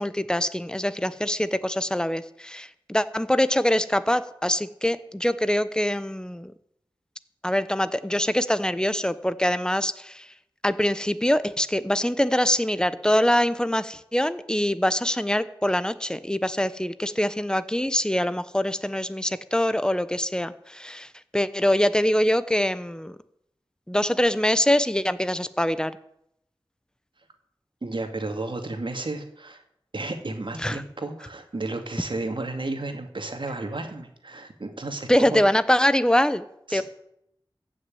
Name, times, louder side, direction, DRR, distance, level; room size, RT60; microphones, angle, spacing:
voice 1, 0.0-6.5 7.4-10.3 10.6-23.2 23.9-25.9 30.6-30.8 35.1-36.4 36.7-36.8, left 1 dB, 10° left, 14 dB, 0.9 m, -24 dB
voice 2, 27.8-29.6 29.9-35.4 36.7-36.8, right 2 dB, 65° right, 5 dB, 2.2 m, -32 dB
15.0 x 6.4 x 9.2 m, 0.76 s
wide cardioid pair, 50°, 9 cm